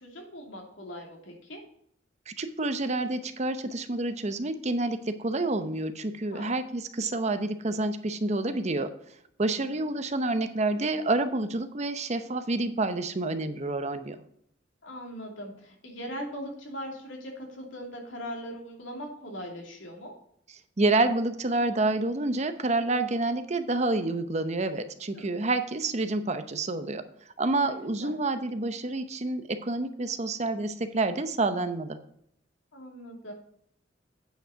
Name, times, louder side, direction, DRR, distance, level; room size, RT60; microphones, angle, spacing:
voice 1, 0.0-1.6 6.3-6.6 9.6-9.8 14.8-20.1 25.2-25.3 27.6-27.7 28.0-28.2 32.7-33.3, equal, 90° left, 1 dB, 2.6 m, -40 dB
voice 2, 2.3-8.9 9.4-14.2 20.8-27.0 27.4-32.0, right 2 dB, 35° right, 10 dB, 0.7 m, -28 dB
9.0 x 5.4 x 5.7 m, 0.68 s
head